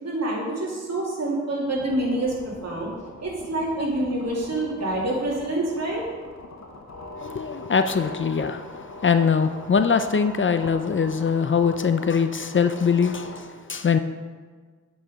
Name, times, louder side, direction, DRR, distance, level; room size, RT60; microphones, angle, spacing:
voice 1, 0.0-2.3 2.6-2.9 3.2-6.0, right 1 dB, 60° right, -3 dB, 2.5 m, -26 dB
sound 1, 1.7-13.4, left 2 dB, 65° left, 1.3 m, -42 dB
voice 2, 7.2-14.0, left 6 dB, 40° left, 9 dB, 0.5 m, -22 dB
8.6 x 4.9 x 5.2 m, 1.5 s
cardioid pair, 65°, 29 cm